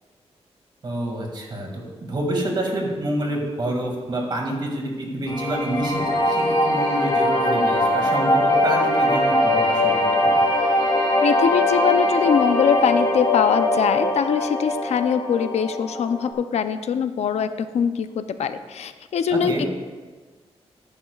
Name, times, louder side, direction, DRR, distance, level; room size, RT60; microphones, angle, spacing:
voice 1, 0.8-10.1 19.3-19.7, right 1 dB, 45° right, 1 dB, 2.1 m, -27 dB
sound 1, 5.3-16.3, left 1 dB, 40° left, 2.8 m, -21 dB
voice 2, 11.2-19.7, left 7 dB, 85° left, 10 dB, 0.5 m, -22 dB
14.0 x 10.5 x 2.4 m, 1.4 s
wide cardioid pair, 155°, 11 cm